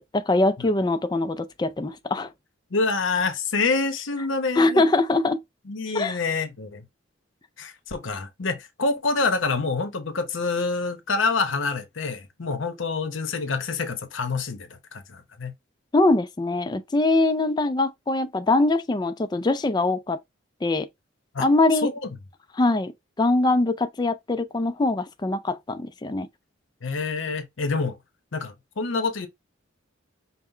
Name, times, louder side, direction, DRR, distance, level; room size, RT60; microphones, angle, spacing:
voice 1, 0.0-2.3 4.6-5.4 5.9-6.2 15.9-20.2 20.6-20.9 21.4-21.9 22.6-22.9 23.2-26.3, left 2 dB, 20° left, 0.3 m, -22 dB
voice 2, 2.7-4.8 5.7-6.8 7.6-15.5 21.3-21.5 21.8-22.1 26.8-28.0 28.3-29.3, left 4 dB, 70° left, 0.8 m, -27 dB
5.5 x 2.1 x 3.2 m
head